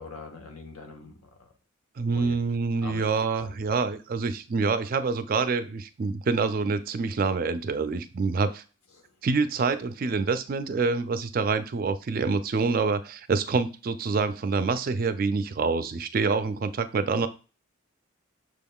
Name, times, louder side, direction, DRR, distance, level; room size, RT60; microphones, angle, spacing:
voice 1, 0.0-1.5 2.1-2.4 2.8-3.6 8.9-9.0, left 4 dB, 90° left, 4 dB, 1.0 m, -43 dB
voice 2, 2.0-8.6 9.2-17.3, right 4 dB, 40° right, 11 dB, 0.3 m, -26 dB
6.3 x 3.6 x 2.3 m, 0.34 s
head